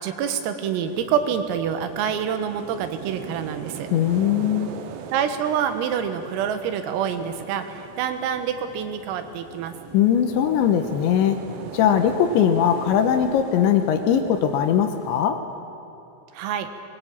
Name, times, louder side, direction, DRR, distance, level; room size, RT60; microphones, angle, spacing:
voice 1, 0.0-3.9 5.1-9.7 16.3-16.7, right 8 dB, 85° right, 8 dB, 4.0 m, -26 dB
sound 1, 0.8-15.3, right 6 dB, 70° right, 3.2 m, -40 dB
voice 2, 3.9-4.7 9.9-11.4 11.7-15.4, left 9 dB, 75° left, 7 dB, 3.1 m, -20 dB
22.0 x 20.5 x 8.6 m, 2.8 s
omnidirectional pair, 5.9 m